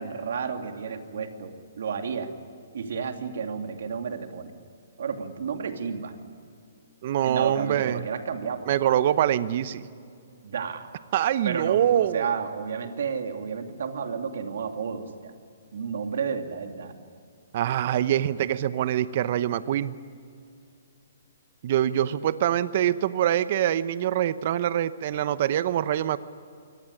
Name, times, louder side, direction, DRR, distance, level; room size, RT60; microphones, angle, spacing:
voice 1, 0.0-2.3 2.7-4.5 5.0-6.1 7.2-8.7 10.4-10.9 11.4-15.3 15.7-16.9, right 6 dB, 70° right, 6 dB, 2.6 m, -31 dB
voice 2, 7.0-8.0 8.7-9.8 11.1-12.4 17.5-20.0 21.6-26.2, right 11 dB, 50° right, 15 dB, 0.9 m, -24 dB
24.0 x 18.0 x 9.9 m, 2.4 s
hypercardioid pair, 145°, 0 cm